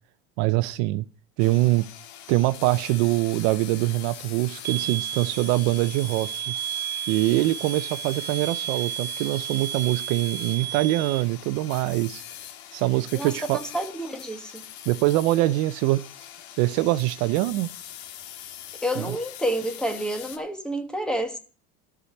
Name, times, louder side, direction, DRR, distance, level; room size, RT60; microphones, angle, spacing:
voice 1, 0.4-1.0 1.4-1.9 2.3-6.5 7.1-12.2 12.7-13.6 14.9-16.0 16.6-17.7 19.0-19.2, right 18 dB, 65° right, 0.7 m, -23 dB
sound 1, 1.4-20.4, left 10 dB, 80° left, 1.8 m, -42 dB
sound 2, 4.6-11.2, right 13 dB, 30° right, 1.0 m, -33 dB
voice 2, 13.1-14.6 18.8-21.4, right 1 dB, 5° left, 1.3 m, -29 dB
13.0 x 5.0 x 7.8 m
cardioid pair, 165°, 31 cm